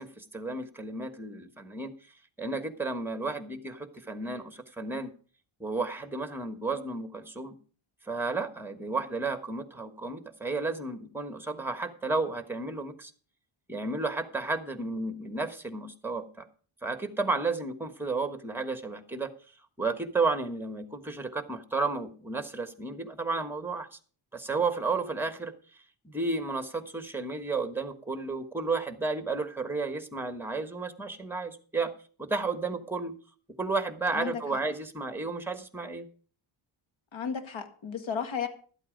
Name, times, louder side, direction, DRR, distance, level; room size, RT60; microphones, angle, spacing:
voice 1, 0.0-1.9 2.4-5.1 5.6-7.6 8.1-13.1 13.7-16.4 16.8-19.3 19.8-23.9 24.3-25.5 26.0-31.9 32.2-33.1 33.6-36.1, right 3 dB, 5° right, 1.2 m, -32 dB
voice 2, 34.1-34.6 37.1-38.5, left 7 dB, 65° left, 1.9 m, -34 dB
12.0 x 8.4 x 5.1 m
cardioid pair, 115°, 50 cm